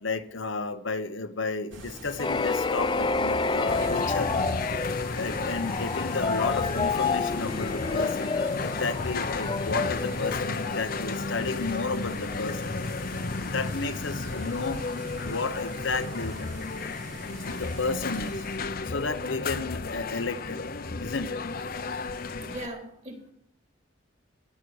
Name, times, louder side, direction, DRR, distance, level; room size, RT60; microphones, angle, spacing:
voice 1, 0.0-4.5 5.1-8.3 8.6-12.8 13.4-14.8 15.2-16.4 17.4-18.4 18.8-20.7 21.0-21.4, left 3 dB, 85° left, 1.1 m, -32 dB
sound 1, 1.7-18.6, right 2 dB, 85° right, 2.8 m, -45 dB
sound 2, 2.2-10.9, left 4 dB, 25° left, 0.5 m, -29 dB
sound 3, 3.7-22.7, left 3 dB, 50° left, 0.8 m, -33 dB
voice 2, 22.4-23.3, right 1 dB, 35° right, 3.2 m, -40 dB
22.0 x 7.6 x 4.9 m
head